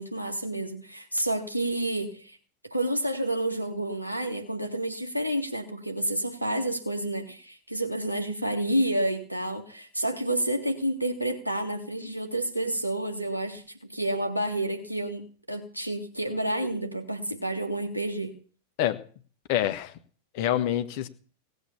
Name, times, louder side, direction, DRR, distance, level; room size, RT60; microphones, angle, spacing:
voice 1, 0.0-2.4 2.7-13.6 13.9-18.3, right 1 dB, 85° right, 2.0 m, -29 dB
voice 2, 19.5-20.0 20.3-21.1, left 12 dB, 45° left, 1.4 m, -26 dB
17.5 x 8.0 x 7.3 m
figure-of-eight pair, 90°, 0 cm